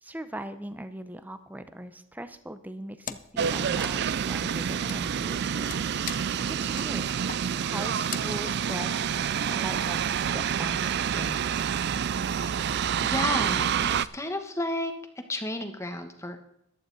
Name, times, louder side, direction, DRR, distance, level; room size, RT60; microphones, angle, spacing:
voice 1, 0.0-5.7 6.1-7.1 7.6-11.7, right 1 dB, 10° right, 11 dB, 0.7 m, -40 dB
Wood, 3.0-3.4 3.7-9.3, left 8 dB, 40° left, 0.6 m, -42 dB
sound 1, 3.4-14.1, right 8 dB, 50° right, 0.4 m, -28 dB
voice 2, 13.0-14.9 15.3-16.4, left 1 dB, 15° left, 6 dB, 1.2 m, -32 dB
14.5 x 11.5 x 4.1 m, 0.80 s
head